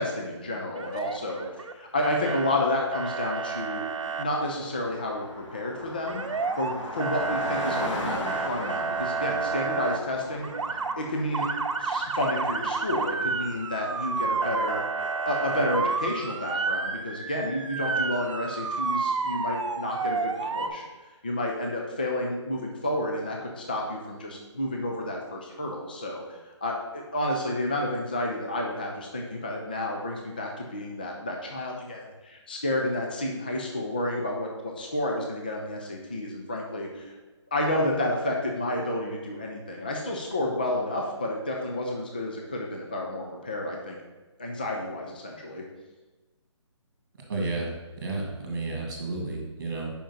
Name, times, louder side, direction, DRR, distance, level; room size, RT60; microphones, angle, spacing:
voice 1, 0.0-3.8 4.2-11.5 11.8-14.8 15.1-20.8 21.2-37.2 37.5-44.0 44.4-45.6, left 1 dB, 20° left, 0 dB, 0.3 m, -30 dB
Motor vehicle (road) / Siren, 0.7-1.7 2.0-2.5 2.9-4.2 6.1-6.7 7.0-10.0 10.4-10.9 11.3-20.7, right 4 dB, 90° right, 0.7 m, -30 dB
Car passing by, 2.6-2.7 2.9-13.9, left 1 dB, 80° left, 2.0 m, -39 dB
voice 2, 47.3-47.7 48.0-49.9, right 3 dB, 40° right, 0 dB, 1.8 m, -31 dB
5.1 x 5.1 x 5.6 m, 1.2 s
hypercardioid pair, 175°, 16 cm